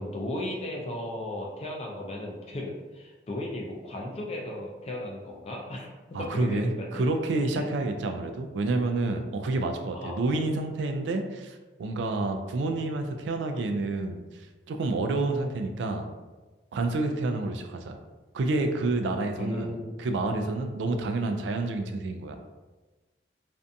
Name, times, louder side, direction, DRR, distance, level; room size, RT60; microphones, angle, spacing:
voice 1, 0.0-7.1 7.5-7.6 9.9-10.2 19.4-19.9, left 1 dB, 35° left, -1 dB, 0.4 m, -35 dB
voice 2, 6.1-16.1 16.7-18.0 18.3-22.4, right 2 dB, 80° right, 5 dB, 0.3 m, -29 dB
2.5 x 2.2 x 2.6 m, 1.2 s
head